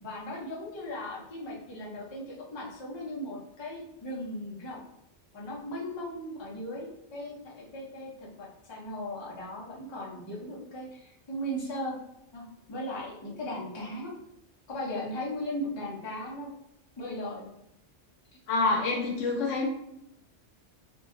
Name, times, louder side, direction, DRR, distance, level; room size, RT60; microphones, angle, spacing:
voice 1, 0.0-4.8 5.3-12.0 12.3-14.1 14.7-16.5 17.0-17.5, left 1 dB, 35° left, -4 dB, 0.5 m, -37 dB
voice 2, 18.5-19.7, left 3 dB, 85° left, 1 dB, 1.0 m, -27 dB
2.5 x 2.2 x 2.4 m, 0.79 s
omnidirectional pair, 1.3 m